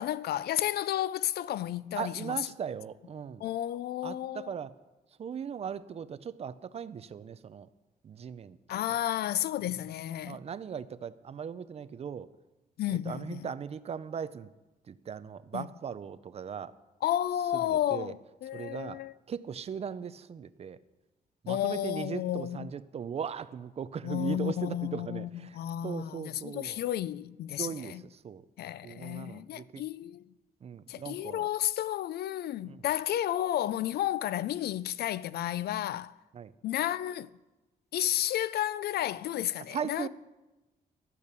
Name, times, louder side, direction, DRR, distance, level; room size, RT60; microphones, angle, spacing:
voice 1, 0.0-2.5 3.4-4.6 8.7-10.4 12.8-13.5 15.5-15.7 17.0-19.1 21.5-22.7 24.0-28.0 28.6-30.3 30.9-36.1 36.6-37.3 37.9-40.1, left 12 dB, 85° left, 0.4 m, -32 dB
voice 2, 2.0-3.4 4.0-4.7 5.2-7.7 8.0-8.6 10.2-12.3 13.1-14.5 14.9-16.7 17.6-18.1 18.5-19.0 19.3-20.8 21.4-25.6 25.8-26.8 27.6-27.9 28.2-28.4 28.8-29.8 30.6-31.5 32.6-32.8 36.3-36.5 39.7-40.1, right 7 dB, 40° right, 0.5 m, -38 dB
12.5 x 8.4 x 6.7 m
wide cardioid pair, 155°, 16 cm